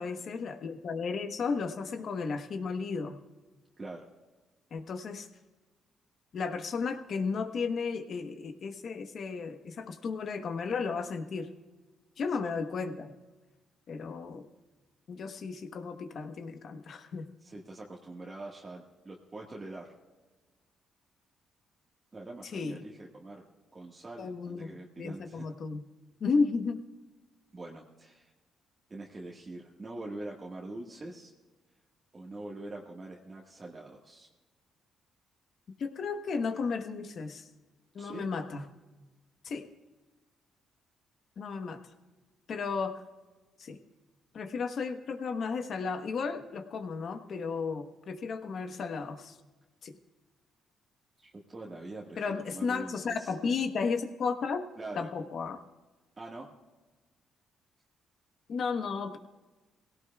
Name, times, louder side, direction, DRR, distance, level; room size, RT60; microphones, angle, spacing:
voice 1, 0.0-3.2 4.7-5.3 6.3-11.5 12.2-13.1 13.9-14.5 15.1-17.3 22.5-22.8 24.2-25.8 26.2-26.8 35.8-37.5 37.9-38.6 39.4-39.7 41.4-41.8 42.5-43.0 43.6-43.8 44.3-49.4 49.8-50.0 52.2-54.7 55.0-55.6 58.5-59.2, left 5 dB, 55° left, 7 dB, 1.1 m, -34 dB
voice 2, 3.8-4.1 17.4-19.9 22.1-23.4 23.7-25.5 27.5-28.3 28.9-31.3 32.1-34.3 38.0-38.3 51.2-53.5 54.8-55.1 56.2-56.5, right 2 dB, 30° right, -3 dB, 1.6 m, -44 dB
19.5 x 17.0 x 2.4 m, 1.2 s
cardioid pair, 90°, 0 cm